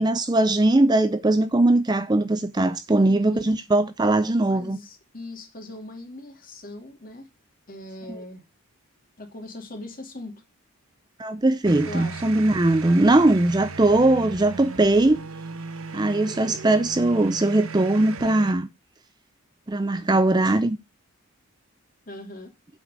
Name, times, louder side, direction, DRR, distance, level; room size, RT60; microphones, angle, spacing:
voice 1, 0.0-4.8 11.2-15.2 15.9-18.7 19.7-20.8, right 2 dB, 20° right, 0.5 m, -20 dB
voice 2, 3.0-3.5 4.5-7.3 7.7-8.4 9.2-10.3 11.7-12.2 22.1-22.5, left 2 dB, 40° left, 2.7 m, -40 dB
sound 1, 11.6-18.5, right 4 dB, 75° right, 1.0 m, -37 dB
8.0 x 6.3 x 6.3 m
head